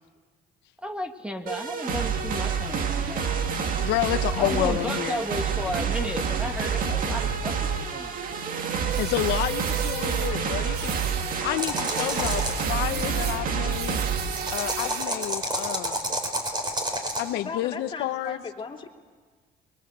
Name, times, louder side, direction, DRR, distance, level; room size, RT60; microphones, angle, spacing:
voice 1, 0.8-3.4 4.4-8.5, equal, 5° right, 6 dB, 1.5 m, -34 dB
sound 1, 1.5-15.2, right 6 dB, 55° right, 2.1 m, -28 dB
voice 2, 3.8-5.2 8.9-14.0 14.5-16.1 17.2-18.4, left 14 dB, 90° left, 9 dB, 0.9 m, -30 dB
sound 2, 8.9-10.4 10.7-11.5 11.8-15.2, right 10 dB, 75° right, 1.1 m, -37 dB
sound 3, 11.6-12.6 14.3-17.2, right 1 dB, 25° right, 4.8 m, -29 dB
voice 3, 17.3-18.9, left 5 dB, 30° left, 1 dB, 3.0 m, -37 dB
25.0 x 22.0 x 8.1 m, 1.5 s
cardioid pair, 110°, 17 cm